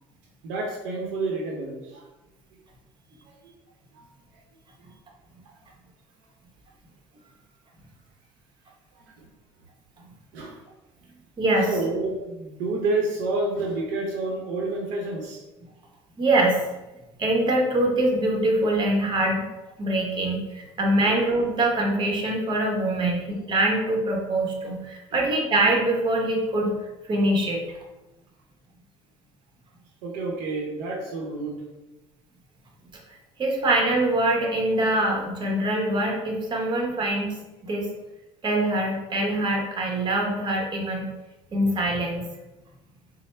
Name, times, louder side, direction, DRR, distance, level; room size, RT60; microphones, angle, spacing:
voice 1, 0.4-2.1 3.3-3.5 3.9-4.0 10.3-10.6 11.7-15.4 21.0-21.2 23.0-23.1 25.1-25.2 30.0-31.6, right 2 dB, 75° right, 0 dB, 0.8 m, -29 dB
voice 2, 11.4-11.7 16.2-16.6 17.2-19.4 19.8-26.7 27.1-27.6 33.4-37.9 38.4-41.0 41.5-42.2, right 1 dB, 35° right, 0 dB, 0.9 m, -24 dB
4.2 x 2.0 x 3.2 m, 1.0 s
supercardioid pair, 85°, 13 cm